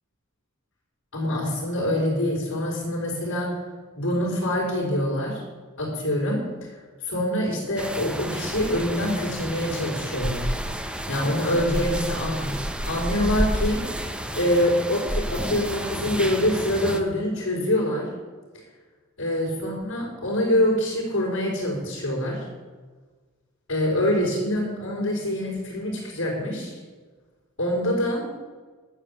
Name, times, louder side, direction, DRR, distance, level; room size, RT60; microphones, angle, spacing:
voice 1, 1.1-3.5 4.0-5.4 5.8-6.7 7.0-10.5 11.1-12.5 12.8-13.8 14.4-18.1 19.2-22.4 23.7-26.8 27.6-28.2, left 1 dB, 80° left, -6 dB, 4.9 m, -25 dB
sound 1, 7.8-17.0, equal, 5° right, 0.9 m, -30 dB
12.0 x 7.6 x 8.6 m, 1.4 s
head